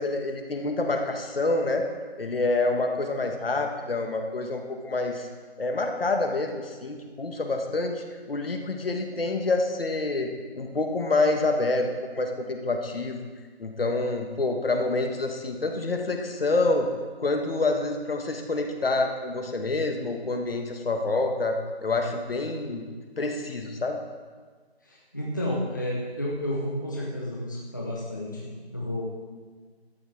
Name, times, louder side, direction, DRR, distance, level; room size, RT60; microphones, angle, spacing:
voice 1, 0.0-1.8 2.2-5.3 5.6-11.9 12.1-13.2 13.6-16.9 17.2-22.8 23.2-24.0, left 2 dB, 60° left, 4 dB, 1.6 m, -27 dB
voice 2, 24.8-29.0, left 1 dB, 20° left, -4 dB, 0.7 m, -31 dB
12.5 x 8.6 x 4.6 m, 1.5 s
figure-of-eight pair, 170°, 32 cm